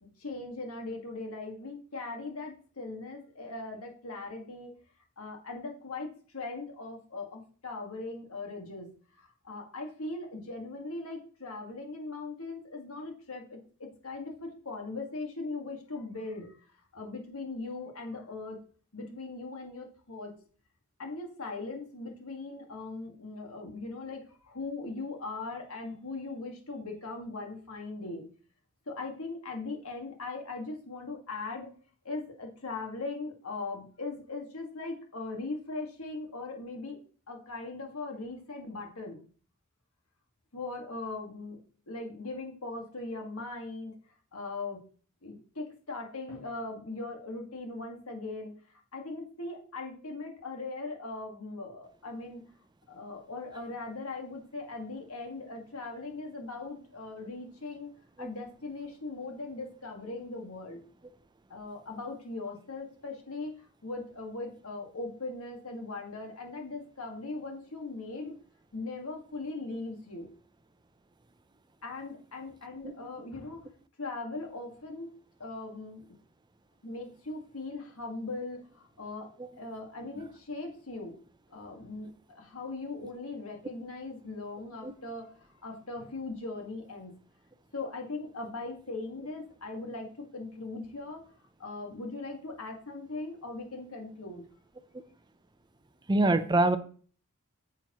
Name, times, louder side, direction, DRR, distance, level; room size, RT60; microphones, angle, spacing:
voice 1, 0.0-4.7 5.2-8.9 9.2-16.6 16.9-18.6 18.9-20.4 21.0-28.3 28.9-31.7 32.0-37.0 37.3-39.2 40.5-41.6 41.9-43.9 44.3-44.8 45.2-48.5 48.9-52.4 52.9-57.9 58.2-60.8 61.5-68.4 68.7-70.3 71.8-73.6 74.0-75.1 75.4-76.1 76.8-81.1 81.5-87.1 87.7-91.3 91.6-94.5, left 3 dB, 90° left, 1.8 m, -39 dB
voice 2, 96.1-96.8, right 2 dB, 20° right, 0.6 m, -24 dB
9.0 x 7.1 x 3.0 m
head